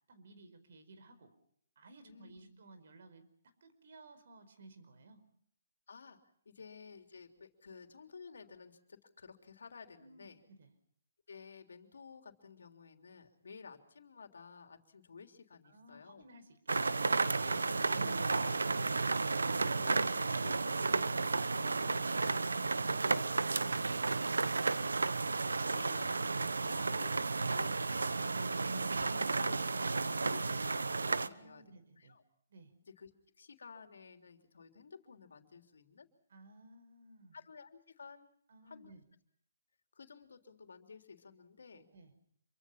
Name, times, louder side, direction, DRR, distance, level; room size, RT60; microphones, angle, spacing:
voice 1, 0.1-1.3 1.7-3.3 3.6-5.2 10.0-10.7 15.6-16.8 31.2-32.2 32.5-32.7 36.3-37.4 38.5-39.0 41.9-42.1, right 2 dB, 60° right, 9 dB, 4.9 m, -58 dB
voice 2, 2.0-2.4 5.9-6.2 6.4-10.4 11.3-16.2 17.4-21.9 22.2-22.4 22.7-27.1 27.5-28.0 28.3-31.6 32.0-32.2 33.0-33.1 33.4-36.1 37.3-38.3 38.6-38.9 39.9-41.9, left 5 dB, 75° left, 6 dB, 3.4 m, -53 dB
sound 1, 16.7-31.3, right 3 dB, 85° right, 1.1 m, -33 dB
27.0 x 24.0 x 5.9 m, 0.64 s
hypercardioid pair, 145°, 0 cm